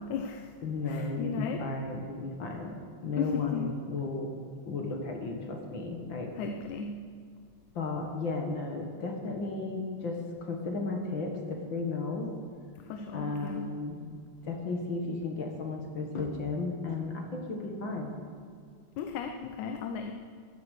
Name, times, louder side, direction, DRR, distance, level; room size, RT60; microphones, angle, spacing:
voice 1, 0.0-0.5 0.9-1.6 3.2-3.7 6.4-7.0 12.9-13.7 19.0-20.1, left 6 dB, 85° left, 5 dB, 2.2 m, -35 dB
voice 2, 0.6-2.8 3.0-4.3 4.6-6.3 7.7-12.3 13.1-14.0 14.4-18.2, left 3 dB, 50° left, 2 dB, 1.9 m, -34 dB
15.0 x 11.5 x 6.5 m, 2.1 s
omnidirectional pair, 3.3 m